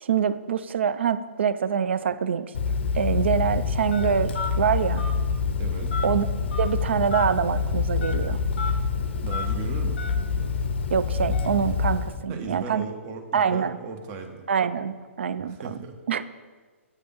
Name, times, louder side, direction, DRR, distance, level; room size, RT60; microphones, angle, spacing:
voice 1, 0.0-2.5 2.9-5.1 6.0-6.3 6.6-8.4 10.9-12.9 13.3-13.8 14.5-15.8 16.1-16.2, right 7 dB, 55° right, 13 dB, 0.3 m, -25 dB
Telephone, 2.5-12.2, left 5 dB, 50° left, 0.5 m, -26 dB
voice 2, 5.6-5.9 9.2-10.0 12.3-14.4 15.4-16.0, right 4 dB, 25° right, 5 dB, 0.7 m, -37 dB
8.2 x 3.3 x 5.2 m, 1.5 s
figure-of-eight pair, 125°, 7 cm